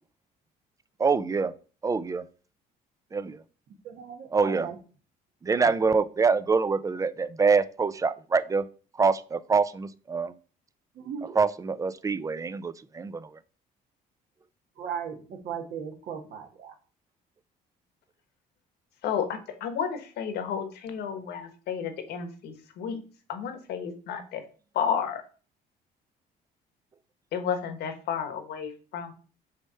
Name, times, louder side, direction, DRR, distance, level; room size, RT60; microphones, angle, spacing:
voice 1, 1.0-1.5 1.8-2.2 3.1-3.4 4.3-4.7 5.4-8.7 9.0-10.3 11.2-13.3, right 5 dB, 20° right, 14 dB, 0.5 m, -25 dB
voice 2, 3.8-4.8 5.6-5.7 10.9-11.4 14.8-16.7, right 7 dB, 60° right, 4 dB, 1.6 m, -37 dB
voice 3, 19.0-23.0 23.3-24.4 24.7-25.2 27.3-29.1, left 7 dB, 75° left, 8 dB, 1.4 m, -32 dB
6.6 x 3.2 x 5.5 m, 0.37 s
cardioid pair, 110°, 17 cm